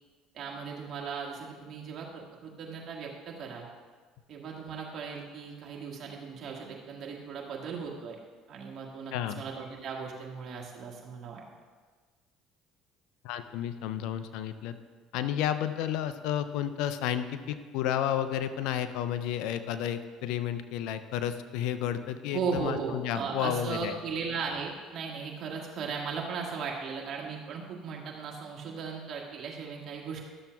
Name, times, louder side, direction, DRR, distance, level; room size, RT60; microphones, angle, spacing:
voice 1, 0.3-3.7 4.3-8.2 8.5-11.4 22.3-30.2, right 5 dB, 55° right, -2 dB, 1.7 m, -37 dB
voice 2, 9.1-9.4 13.2-14.8 15.1-24.0, left 10 dB, 75° left, 11 dB, 0.5 m, -31 dB
12.0 x 7.0 x 2.3 m, 1.4 s
hypercardioid pair, 70°, 0 cm